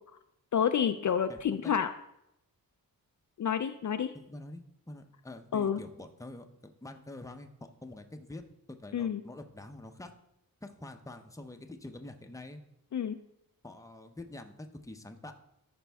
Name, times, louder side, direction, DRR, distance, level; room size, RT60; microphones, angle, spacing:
voice 1, 0.5-1.9 3.4-4.1 5.5-5.8 8.9-9.2 12.9-13.2, left 8 dB, 55° left, 9 dB, 0.4 m, -29 dB
voice 2, 1.3-1.7 4.1-8.4 8.7-10.1 10.6-12.6 13.6-15.3, left 2 dB, 10° left, 5 dB, 0.7 m, -46 dB
13.5 x 5.2 x 3.5 m, 0.80 s
wide cardioid pair, 120°, 36 cm